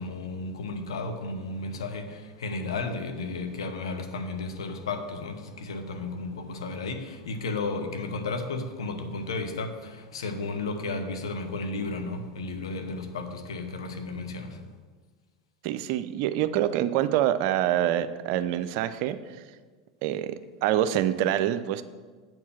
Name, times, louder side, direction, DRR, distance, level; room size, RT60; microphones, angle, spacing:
voice 1, 0.0-14.6, left 3 dB, 80° left, 1.0 m, -33 dB
voice 2, 15.6-19.2 20.0-20.3 20.6-21.8, right 12 dB, 60° right, 0.5 m, -25 dB
8.0 x 4.6 x 7.3 m
hypercardioid pair, 90°, 3 cm